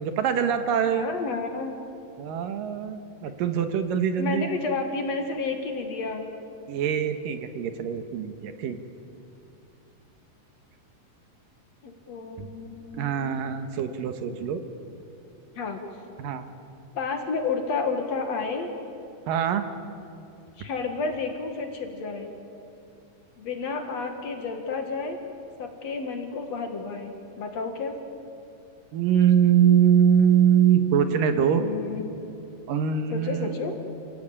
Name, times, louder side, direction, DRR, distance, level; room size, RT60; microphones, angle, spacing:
voice 1, 0.0-1.1 2.2-4.5 6.7-8.8 12.4-12.5 12.9-14.6 16.2-16.4 19.3-19.6 28.9-31.6 32.7-33.6, right 8 dB, 75° right, 8 dB, 2.9 m, -23 dB
voice 2, 0.8-1.8 4.2-6.3 11.8-13.3 15.6-15.8 16.9-18.7 20.6-22.3 23.4-25.2 25.6-28.0 31.1-32.0 33.1-33.8, left 4 dB, 55° left, 5 dB, 2.6 m, -31 dB
29.0 x 17.5 x 8.8 m, 2.8 s
omnidirectional pair, 4.1 m